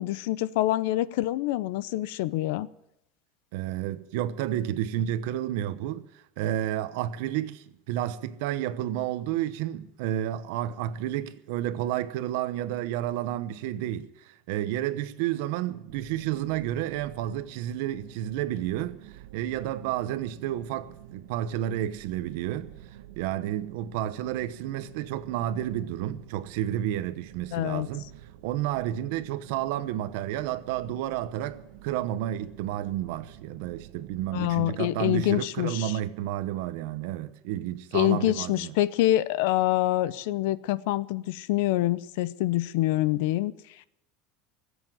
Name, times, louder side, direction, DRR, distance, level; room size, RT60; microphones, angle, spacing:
voice 1, 0.0-2.7 27.5-27.9 34.3-36.0 37.9-43.5, left 15 dB, 60° left, 0.6 m, -26 dB
voice 2, 3.5-22.7 23.2-28.1 28.4-38.7, right 12 dB, 60° right, 0.9 m, -31 dB
sound 1, 15.9-34.6, right 12 dB, 85° right, 1.3 m, -49 dB
18.5 x 8.2 x 9.3 m
supercardioid pair, 180°, 0 cm